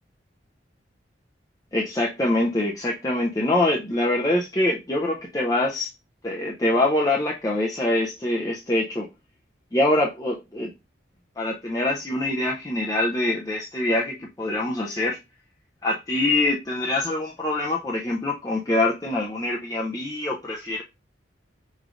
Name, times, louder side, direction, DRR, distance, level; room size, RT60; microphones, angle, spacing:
voice 1, 1.7-5.9 6.2-9.1 9.7-10.7 11.4-15.2 15.8-20.8, left 2 dB, 20° left, 0.4 m, -24 dB
4.9 x 3.1 x 2.4 m
head